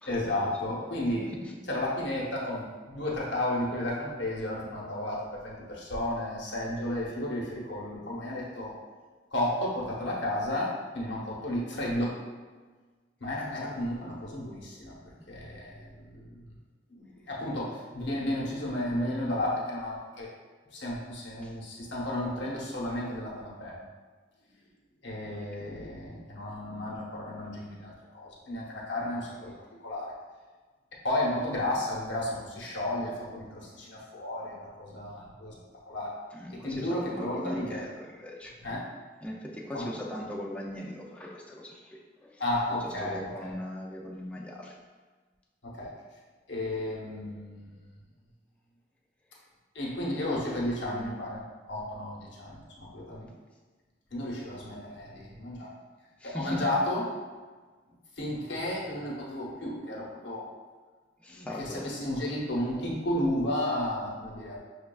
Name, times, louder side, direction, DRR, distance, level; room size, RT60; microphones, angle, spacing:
voice 1, 0.1-1.3 1.7-8.7 9.3-12.1 13.2-15.0 15.3-16.4 16.9-20.3 20.7-23.9 25.0-29.5 29.8-30.1 31.0-35.6 35.9-36.1 36.5-37.8 38.6-38.8 39.7-39.9 42.4-43.5 45.6-45.9 46.5-47.8 49.7-53.3 54.1-55.7 56.2-57.0 58.2-60.5 61.3-64.6, left 1 dB, 80° left, -4 dB, 0.9 m, -33 dB
voice 2, 36.3-38.6 39.2-42.4 42.8-44.7 56.2-56.6 61.2-61.8, left 1 dB, 5° left, -2 dB, 0.4 m, -40 dB
6.0 x 2.3 x 2.3 m, 1.4 s
head